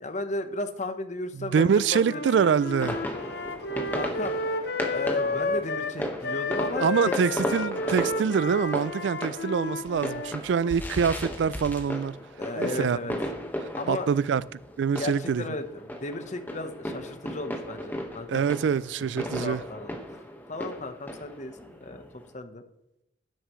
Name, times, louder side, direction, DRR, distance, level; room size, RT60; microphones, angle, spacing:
voice 1, 0.0-2.5 3.9-4.4 4.9-7.1 10.6-10.7 12.4-13.1 13.7-14.1 15.0-19.9 20.5-22.0 22.3-22.6, left 2 dB, 40° left, 1.0 m, -35 dB
voice 2, 1.4-3.0 6.8-12.2 12.6-13.0 13.9-14.4 14.8-15.4 18.3-19.6, right 6 dB, 75° right, 0.3 m, -25 dB
Wind instrument woodwind instrument, 2.0-10.3, left 2 dB, 65° left, 0.8 m, -32 dB
sound 1, 2.8-22.3, equal, 10° left, 1.4 m, -36 dB
12.5 x 10.0 x 3.1 m
head